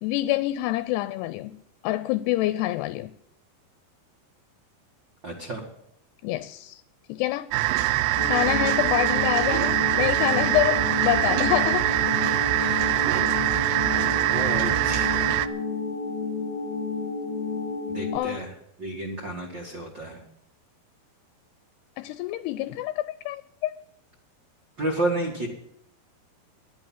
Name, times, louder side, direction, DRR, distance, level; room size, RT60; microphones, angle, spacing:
voice 1, 0.0-3.1 6.2-6.8 7.1-7.5 8.2-11.9 18.1-18.4 22.0-23.7, left 16 dB, 85° left, 2.7 m, -27 dB
voice 2, 5.2-5.6 12.6-13.0 14.3-15.1 17.9-18.5 18.8-20.2 24.8-25.5, right 2 dB, 40° right, 1.8 m, -31 dB
sound 1, 7.5-15.5, right 15 dB, 80° right, 2.7 m, -23 dB
sound 2, 8.2-18.2, left 4 dB, 45° left, 3.0 m, -31 dB
11.5 x 11.0 x 7.4 m
omnidirectional pair, 4.7 m